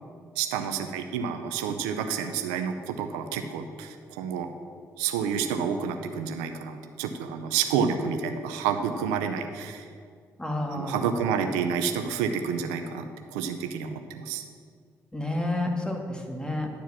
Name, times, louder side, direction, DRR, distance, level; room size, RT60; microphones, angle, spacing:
voice 1, 0.4-4.5 5.0-9.9 10.7-14.4, right 7 dB, 85° right, 7 dB, 0.5 m, -29 dB
voice 2, 10.4-11.2 15.1-16.7, left 1 dB, 10° left, 2 dB, 2.0 m, -30 dB
11.5 x 4.7 x 7.3 m, 2.1 s
hypercardioid pair, 45°, 8 cm